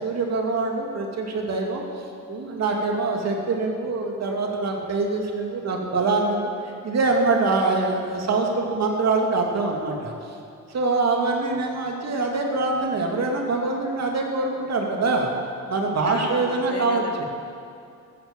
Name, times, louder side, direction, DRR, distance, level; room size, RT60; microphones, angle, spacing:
voice 1, 0.0-1.8 2.3-6.5 6.8-10.1 10.7-15.3 15.7-17.3, right 3 dB, 55° right, 1 dB, 2.5 m, -24 dB
voice 2, 16.0-17.3, left 5 dB, 45° left, 5 dB, 1.4 m, -35 dB
14.5 x 12.0 x 7.4 m, 2.4 s
cardioid pair, 125°, 32 cm